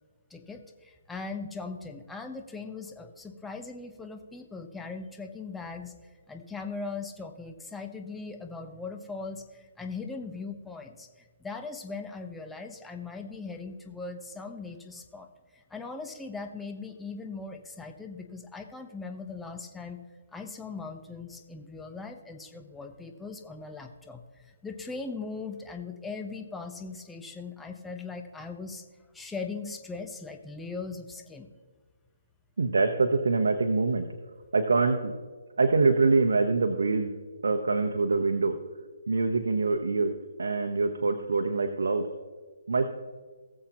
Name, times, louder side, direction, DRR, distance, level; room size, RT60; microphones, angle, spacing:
voice 1, 0.3-5.9 6.3-11.1 11.4-15.3 15.5-20.0 20.3-28.8 29.1-31.5, left 4 dB, 5° left, 4 dB, 0.9 m, -39 dB
voice 2, 32.6-34.1 34.5-35.1 35.6-37.1 37.4-38.6 39.1-40.1 40.4-42.1 42.7-42.9, right 3 dB, 80° right, 5 dB, 0.9 m, -24 dB
19.0 x 7.4 x 3.0 m, 1.5 s
hypercardioid pair, 150°, 0 cm